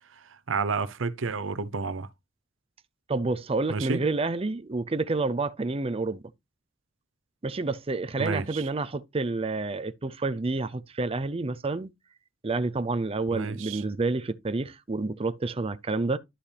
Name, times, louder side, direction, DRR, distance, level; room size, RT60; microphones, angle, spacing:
voice 1, 0.1-2.1 3.7-4.0 8.2-8.7 13.3-13.8, right 4 dB, 90° right, 0.7 m, -31 dB
voice 2, 3.1-6.2 7.4-11.9 12.4-16.2, right 3 dB, 30° right, 0.6 m, -29 dB
11.5 x 5.1 x 3.4 m
head